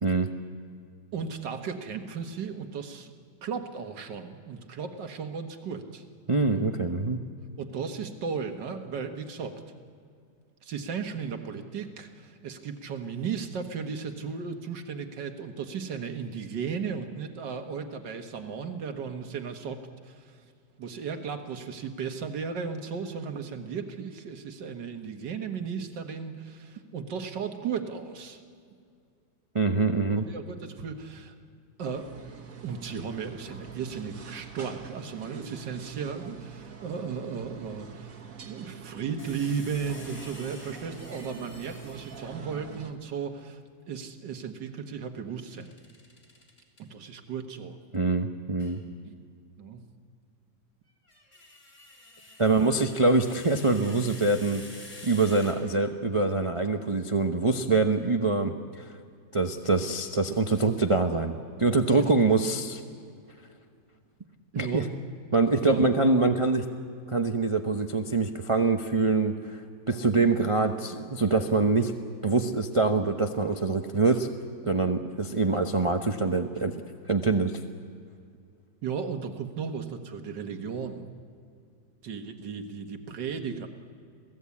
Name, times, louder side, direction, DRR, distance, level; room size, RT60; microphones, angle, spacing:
voice 1, 0.0-0.3 6.3-7.2 29.5-30.3 47.9-48.8 52.4-54.7 55.0-58.5 59.3-62.8 64.5-64.9 65.3-66.7 67.1-69.6 69.9-71.9 72.2-74.3 74.6-76.8 77.1-77.6, right 3 dB, 30° right, 5 dB, 0.5 m, -24 dB
voice 2, 1.1-3.1 3.4-6.0 7.6-9.6 10.6-20.4 20.8-28.4 30.2-31.4 31.8-32.1 32.6-38.2 38.5-43.6 43.9-45.7 46.8-47.8 49.0-49.1 49.6-49.8 52.4-52.7 62.0-62.2 64.5-64.9 65.6-65.9 78.8-81.1 82.0-83.7, right 6 dB, 70° right, 6 dB, 2.1 m, -35 dB
sound 1, 31.8-42.9, right 7 dB, 50° right, 1.8 m, -45 dB
sound 2, 39.2-42.5 45.4-46.8 48.6-48.8 50.9-56.0, left 2 dB, 40° left, 3.8 m, -49 dB
27.5 x 17.5 x 8.5 m, 2.3 s
omnidirectional pair, 2.0 m